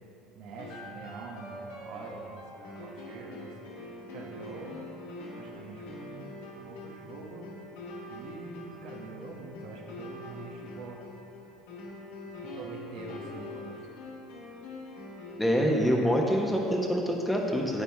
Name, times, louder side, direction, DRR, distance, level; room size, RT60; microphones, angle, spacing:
voice 1, 0.3-2.4 2.8-3.5 4.1-4.8 5.4-7.5 8.1-11.0 12.5-13.8, right 4 dB, 70° right, -1 dB, 1.3 m, -45 dB
sound 1, 0.6-15.9, left 1 dB, 80° left, 1.7 m, -44 dB
voice 2, 15.4-17.8, equal, 5° left, -1 dB, 1.4 m, -26 dB
9.4 x 8.7 x 3.6 m, 2.9 s
hypercardioid pair, 75°, 0 cm